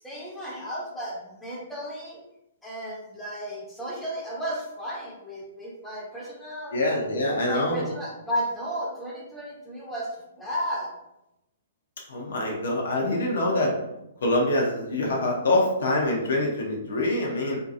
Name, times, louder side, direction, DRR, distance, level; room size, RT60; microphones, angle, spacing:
voice 1, 0.0-2.2 2.6-6.8 7.3-10.9, equal, 5° left, -5 dB, 0.8 m, -34 dB
voice 2, 6.7-7.9 12.1-13.7 14.2-17.6, left 1 dB, 65° left, -2 dB, 0.6 m, -25 dB
2.6 x 2.2 x 2.5 m, 0.88 s
figure-of-eight pair, 115°, 0 cm